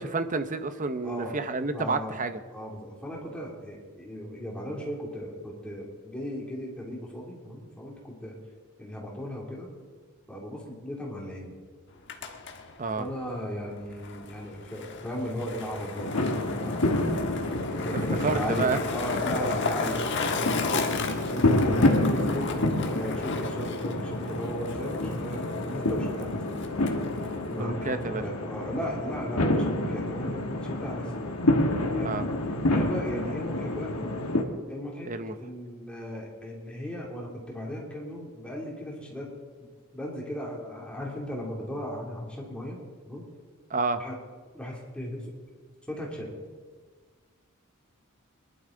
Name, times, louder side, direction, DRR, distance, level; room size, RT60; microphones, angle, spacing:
voice 1, 0.0-2.4 12.8-13.1 18.2-18.8 27.5-28.2 32.0-32.2 35.0-35.3 43.7-44.0, right 3 dB, 35° right, 9 dB, 0.8 m, -29 dB
voice 2, 1.0-1.4 1.7-2.2 2.5-8.4 8.8-9.7 10.3-11.5 13.0-17.1 17.8-20.7 21.0-26.5 27.5-31.1 32.0-32.2 32.7-34.2 34.7-35.1 35.3-39.3 39.9-42.8 43.1-43.2 44.0-44.2 44.5-45.3 45.9-46.3, equal, 5° left, -3 dB, 3.0 m, -37 dB
Skateboard, 11.9-27.6, left 4 dB, 55° left, 1.4 m, -35 dB
sound 1, 15.9-34.4, left 1 dB, 85° left, 1.7 m, -28 dB
22.5 x 12.0 x 3.9 m, 1.5 s
head